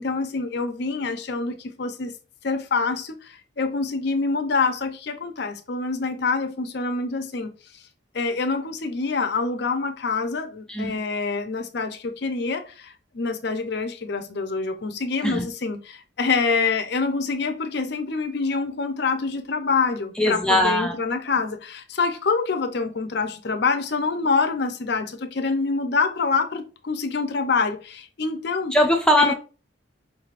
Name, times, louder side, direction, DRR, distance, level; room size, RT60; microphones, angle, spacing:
voice 1, 0.0-2.1 2.4-7.5 8.1-28.7 29.2-29.3, left 4 dB, 55° left, 0.6 m, -26 dB
voice 2, 20.2-20.9 28.7-29.3, left 1 dB, 5° left, 0.6 m, -20 dB
5.0 x 3.3 x 2.4 m
head